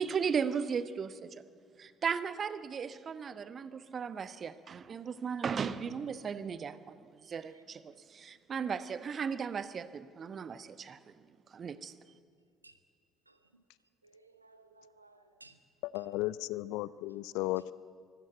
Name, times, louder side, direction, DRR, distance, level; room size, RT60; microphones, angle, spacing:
voice 1, 0.0-1.3 1.8-11.0 11.5-11.9, right 6 dB, 40° right, 1.0 m, -36 dB
voice 2, 13.3-13.6 14.0-15.6 15.9-16.1 16.8-17.2, right 3 dB, 90° right, 0.9 m, -60 dB
voice 3, 15.8-17.7, left 17 dB, 65° left, 0.5 m, -35 dB
24.0 x 15.5 x 9.0 m
figure-of-eight pair, 55°, 0 cm